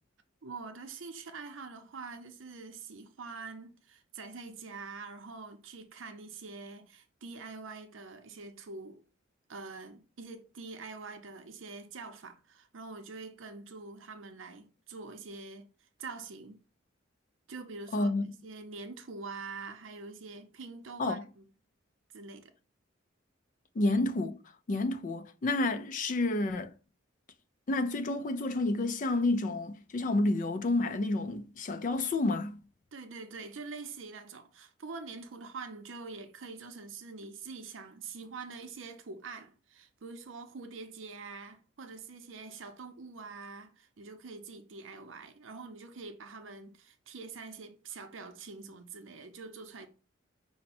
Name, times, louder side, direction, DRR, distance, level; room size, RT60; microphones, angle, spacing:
voice 1, 0.4-9.0 9.5-16.6 17.5-21.4 22.1-22.5 32.9-49.9, right 4 dB, 75° right, 0.6 m, -45 dB
voice 2, 17.9-18.2 21.0-21.2 23.8-24.4 24.7-26.7 27.7-32.6, left 2 dB, 40° left, 0.4 m, -29 dB
5.4 x 2.1 x 4.1 m
head